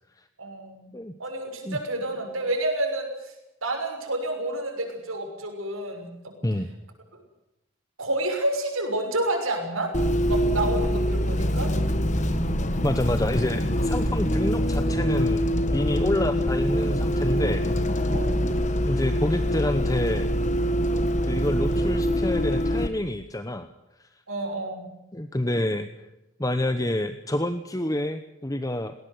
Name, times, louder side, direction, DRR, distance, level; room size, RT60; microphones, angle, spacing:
voice 1, 0.4-0.9 1.2-3.3 3.6-6.3 7.1-7.2 8.0-9.9 10.2-11.7 18.1-18.6 24.3-24.9, right 1 dB, 90° right, 3 dB, 6.3 m, -29 dB
Bus, 9.9-22.9, equal, 35° left, 1.6 m, -24 dB
voice 2, 12.8-15.5 15.7-17.6 18.0-18.1 18.8-20.3 21.3-23.7 25.1-26.1 26.4-28.9, left 1 dB, 15° left, 9 dB, 0.9 m, -28 dB
20.0 x 18.0 x 9.4 m, 0.90 s
head